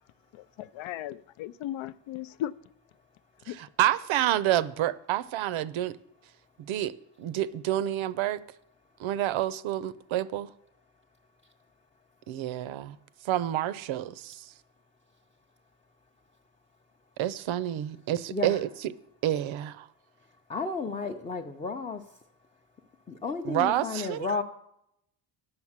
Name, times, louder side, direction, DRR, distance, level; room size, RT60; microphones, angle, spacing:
voice 1, 0.3-2.5 3.5-3.6, left 12 dB, 80° left, 0.5 m, -36 dB
voice 2, 3.6-6.0 6.6-6.9 7.2-8.4 9.0-10.5 12.3-13.0 13.2-14.5 17.2-18.7 19.2-19.9 23.4-24.3, right 12 dB, 80° right, 0.7 m, -28 dB
voice 3, 18.3-18.6 20.5-22.0 23.1-24.4, left 4 dB, 15° left, 0.4 m, -32 dB
9.7 x 6.8 x 7.3 m
cardioid pair, 145°, 47 cm